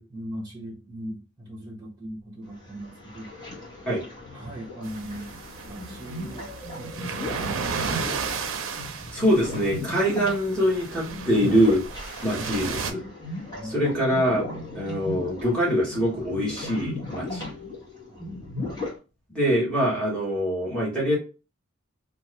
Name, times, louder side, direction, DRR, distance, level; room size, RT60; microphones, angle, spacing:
voice 1, 0.0-3.3 4.3-5.3 5.6-8.3 8.7-8.8 12.3-12.5 13.5-13.8 18.1-18.5, right 1 dB, 20° right, -1 dB, 0.9 m, -40 dB
sound 1, 2.4-19.0, left 2 dB, 20° left, 1.3 m, -37 dB
sound 2, 4.8-12.9, right 5 dB, 80° right, 0.5 m, -34 dB
voice 2, 9.1-11.8 12.2-13.0 13.6-14.4 14.7-17.5 19.3-21.2, equal, 5° left, -5 dB, 1.1 m, -24 dB
2.6 x 2.4 x 3.1 m, 0.32 s
head